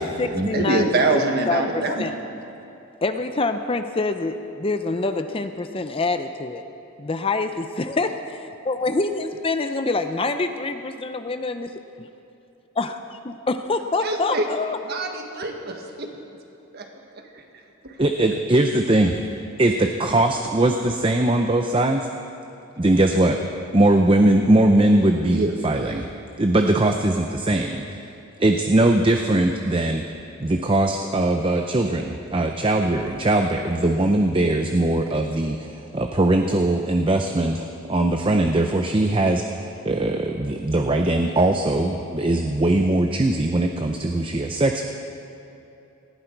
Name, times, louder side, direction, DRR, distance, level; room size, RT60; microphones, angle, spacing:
voice 1, 0.0-1.2 1.5-2.1 3.0-6.6 7.0-8.1 8.6-11.7 12.0-12.1 12.8-14.8, left 3 dB, 25° left, 8 dB, 0.5 m, -26 dB
voice 2, 0.5-2.1 14.0-14.5 14.9-16.1 16.7-16.9 17.3-17.4 17.8-18.0 25.3-25.5, right 2 dB, 45° right, 3 dB, 1.6 m, -24 dB
voice 3, 18.0-19.1 19.6-22.1 22.8-23.4 23.7-26.1 26.4-27.9 28.4-30.0 30.4-44.8, right 1 dB, 25° right, 4 dB, 0.6 m, -20 dB
19.0 x 16.0 x 4.6 m, 2.9 s
head